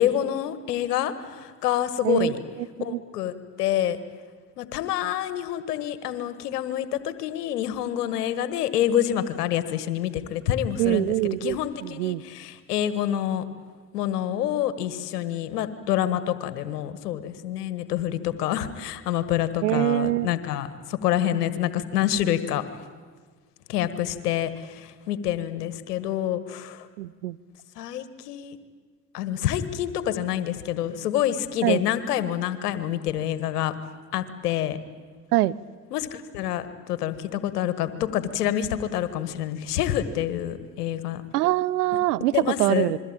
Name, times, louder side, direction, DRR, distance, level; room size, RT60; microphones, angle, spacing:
voice 1, 0.0-2.4 2.8-4.0 4.6-13.4 13.9-22.7 23.7-26.9 27.8-28.6 29.1-33.7 34.1-34.8 35.9-41.2 42.3-42.9, left 11 dB, 85° left, 13 dB, 1.7 m, -27 dB
voice 2, 2.6-3.0 10.8-12.2 19.6-20.3 27.0-27.4 31.6-31.8 35.3-35.6 41.3-43.0, right 16 dB, 85° right, 20 dB, 0.8 m, -24 dB
27.0 x 22.5 x 8.9 m, 1.5 s
hypercardioid pair, 65°, 46 cm